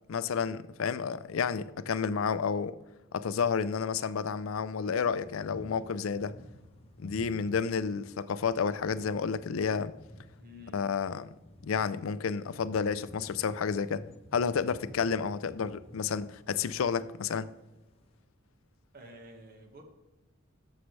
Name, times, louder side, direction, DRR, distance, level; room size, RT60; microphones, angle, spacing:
voice 1, 0.1-2.8 3.1-6.4 7.0-9.9 10.7-11.3 11.6-14.1 14.3-17.5, left 6 dB, 70° left, 0.4 m, -30 dB
sound 1, 4.8-18.2, left 1 dB, 30° left, 0.9 m, -53 dB
voice 2, 10.4-10.9 18.9-19.8, left 1 dB, 45° right, 1.5 m, -50 dB
13.0 x 6.4 x 3.2 m
head